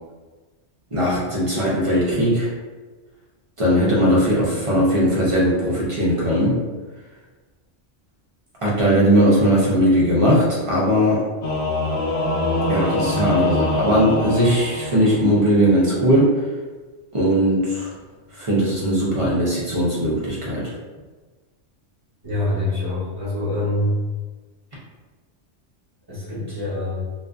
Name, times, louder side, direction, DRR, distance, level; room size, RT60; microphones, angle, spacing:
voice 1, 0.9-2.5 3.6-6.6 8.6-11.2 12.7-16.4 17.1-17.9 18.3-20.7, equal, 40° right, -6 dB, 0.4 m, -19 dB
Singing / Musical instrument, 11.4-15.5, left 2 dB, 60° left, 0.6 m, -24 dB
voice 2, 22.2-24.0 26.1-27.0, left 1 dB, 20° right, -10 dB, 0.9 m, -25 dB
2.4 x 2.4 x 2.3 m, 1.3 s
omnidirectional pair, 1.2 m